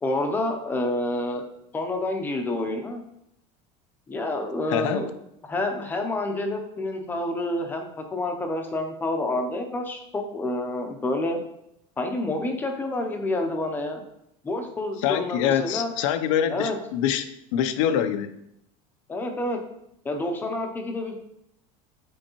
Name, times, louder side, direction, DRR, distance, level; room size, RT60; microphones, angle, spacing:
voice 1, 0.0-1.4 1.7-3.0 4.1-5.1 5.5-11.4 12.0-14.0 14.4-15.9 16.5-16.8 19.1-19.6 20.0-21.1, left 2 dB, 10° left, 4 dB, 0.6 m, -28 dB
voice 2, 4.7-5.0 15.0-18.3, left 9 dB, 85° left, 10 dB, 0.6 m, -25 dB
7.8 x 4.4 x 3.0 m, 0.79 s
cardioid pair, 170°, 16 cm